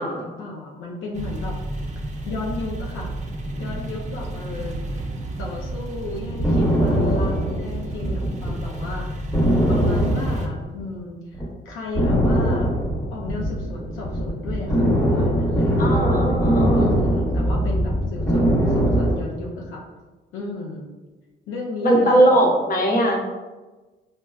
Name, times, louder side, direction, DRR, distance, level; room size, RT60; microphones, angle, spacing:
voice 1, 0.0-1.6 2.3-3.1 3.5-4.8 5.4-9.4 9.7-12.7 13.1-19.8 20.3-20.9 21.5-22.5, left 3 dB, 85° left, -2 dB, 0.6 m, -34 dB
sound 1, 1.1-10.5, right 1 dB, 35° right, 0.6 m, -31 dB
sound 2, 6.0-8.6 8.9-9.0 9.3-11.0 11.3-11.5 11.9-19.2, equal, 10° left, 1.0 m, -21 dB
voice 2, 15.8-16.9 21.8-23.2, right 1 dB, 45° left, -1 dB, 0.9 m, -19 dB
5.2 x 2.1 x 2.4 m, 1.2 s
cardioid pair, 90°, 20 cm